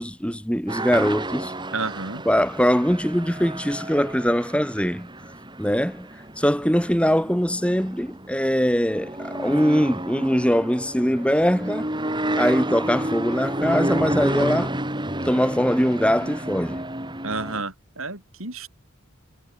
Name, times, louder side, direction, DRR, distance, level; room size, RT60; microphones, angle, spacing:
voice 1, 0.0-1.5 2.3-5.1 5.6-6.1 6.4-11.9 12.3-14.8 15.2-16.8, equal, 5° left, 7.5 m, -22 dB
sound 1, 0.7-17.6, right 1 dB, 20° right, 6.2 m, -31 dB
voice 2, 1.7-2.2 17.2-18.7, right 3 dB, 70° right, 6.4 m, -31 dB
head